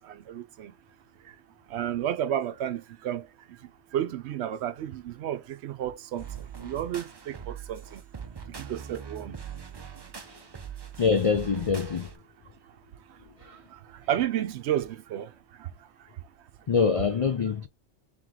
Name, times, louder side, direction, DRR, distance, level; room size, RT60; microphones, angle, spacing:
voice 1, 0.1-0.7 1.7-3.3 3.9-6.2 6.6-8.0 8.6-9.4 14.1-15.3, right 11 dB, 70° right, 0.8 m, -31 dB
sound 1, 6.2-12.2, right 7 dB, 40° right, 0.4 m, -42 dB
voice 2, 11.0-12.1 13.4-13.6 16.7-17.7, left 5 dB, 60° left, 0.3 m, -25 dB
3.4 x 3.0 x 3.6 m
omnidirectional pair, 1.2 m